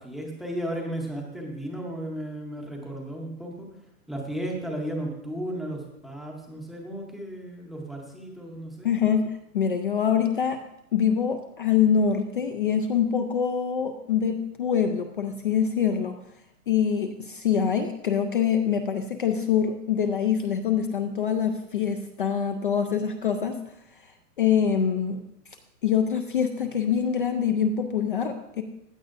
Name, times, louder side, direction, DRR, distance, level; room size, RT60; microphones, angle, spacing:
voice 1, 0.0-3.7 4.1-8.9, right 1 dB, ahead, -1 dB, 0.7 m, -34 dB
voice 2, 8.8-10.6 10.9-16.2 16.7-23.6 24.4-25.2 25.8-28.6, left 7 dB, 35° left, 5 dB, 0.4 m, -25 dB
15.0 x 9.0 x 2.5 m, 0.84 s
hypercardioid pair, 150°, 47 cm